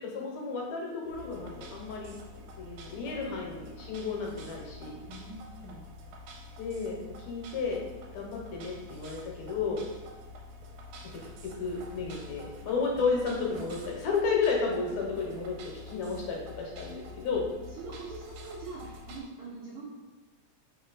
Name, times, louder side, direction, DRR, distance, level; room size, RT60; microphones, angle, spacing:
voice 1, 0.0-5.1 6.6-7.0 7.3-7.8 8.1-9.8 11.0-15.6 15.9-17.4, left 4 dB, 75° left, -1 dB, 2.0 m, -32 dB
sound 1, 1.1-19.2, left 2 dB, 90° right, 2.0 m, -47 dB
voice 2, 5.1-5.9 17.6-19.8, right 3 dB, 70° right, -7 dB, 1.3 m, -43 dB
4.4 x 2.8 x 3.8 m, 1.3 s
omnidirectional pair, 3.3 m